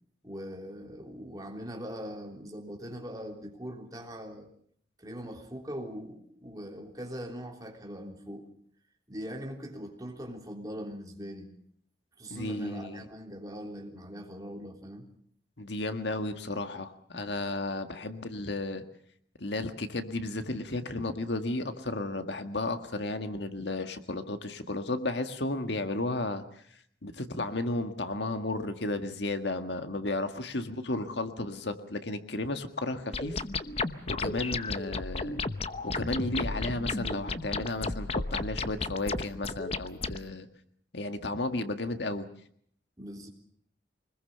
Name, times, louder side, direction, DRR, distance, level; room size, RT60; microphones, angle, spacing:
voice 1, 0.2-4.5 5.0-8.5 9.1-11.5 12.2-15.1 43.0-43.3, equal, 20° right, 2 dB, 3.5 m, -41 dB
voice 2, 12.3-13.0 15.6-18.8 19.4-26.4 27.0-33.4 34.1-35.4 35.8-40.5 40.9-42.3, left 2 dB, 70° left, 7 dB, 1.7 m, -33 dB
sound 1, 33.1-40.2, left 3 dB, 35° left, 0.9 m, -33 dB
25.0 x 20.5 x 6.7 m, 0.65 s
head